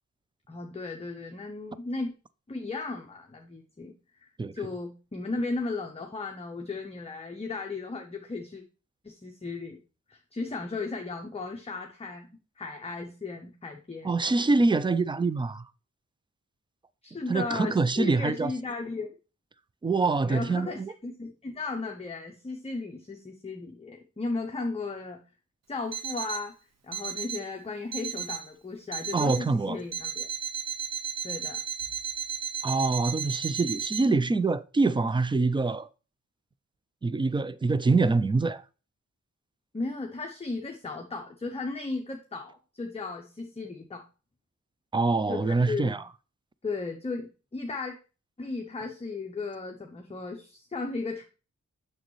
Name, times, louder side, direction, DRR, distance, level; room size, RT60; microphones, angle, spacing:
voice 1, 0.5-2.1 2.5-3.9 4.2-8.6 9.0-9.8 10.1-12.3 12.6-14.4 17.0-19.1 20.2-25.2 25.7-26.6 26.8-30.3 31.2-31.6 39.7-44.1 45.3-46.0 46.6-48.0 48.4-51.2, left 3 dB, 20° left, 0.7 m, -35 dB
voice 2, 14.0-15.6 17.3-18.5 19.8-20.9 29.1-29.8 32.6-35.9 37.0-38.6 44.9-46.0, right 3 dB, 15° right, 0.3 m, -25 dB
Alarm, 25.9-26.5 26.9-27.5 27.9-28.5 28.9-29.5 29.9-34.0, right 8 dB, 55° right, 0.8 m, -34 dB
6.5 x 6.2 x 3.1 m
wide cardioid pair, 120°, 31 cm